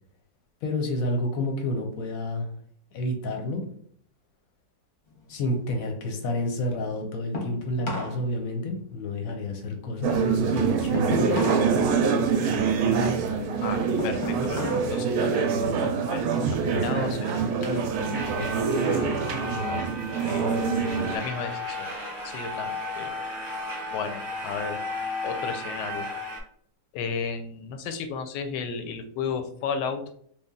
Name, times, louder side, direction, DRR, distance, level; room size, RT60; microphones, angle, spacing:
voice 1, 0.6-2.5 2.9-3.6 5.3-11.5, left 1 dB, 65° left, 4 dB, 1.0 m, -30 dB
sound 1, 5.1-8.2 8.5-11.7 12.1-15.0 15.3-15.7 16.3-17.9 18.3-19.4, left 2 dB, 40° left, 0.8 m, -37 dB
sound 2, 10.0-21.2, right 5 dB, 70° right, 0.9 m, -25 dB
voice 2, 13.6-17.4 18.3-19.0 20.3-20.6 21.1-21.9 22.2-23.1 23.9-24.8 25.2-26.1 26.9-30.0, left 6 dB, 80° left, 8 dB, 1.2 m, -34 dB
sound 3, 17.9-26.4, left 1 dB, 25° right, 0.4 m, -34 dB
3.2 x 2.3 x 3.6 m, 0.62 s
omnidirectional pair, 1.9 m